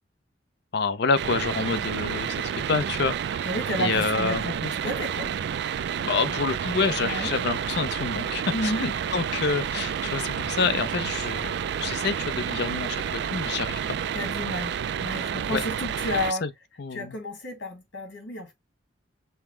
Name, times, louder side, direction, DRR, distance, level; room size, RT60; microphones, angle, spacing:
voice 1, 0.7-3.5 3.8-4.4 6.0-11.5 11.8-14.0 15.5-15.6 16.4-16.5 16.8-17.2, left 4 dB, 60° left, 0.6 m, -28 dB
sound 1, 1.2-16.3, right 8 dB, 65° right, 0.3 m, -30 dB
voice 2, 3.4-5.3 7.0-7.3 8.5-8.8 14.1-16.4 16.9-18.5, left 1 dB, 85° left, 1.8 m, -31 dB
5.6 x 2.1 x 4.5 m
head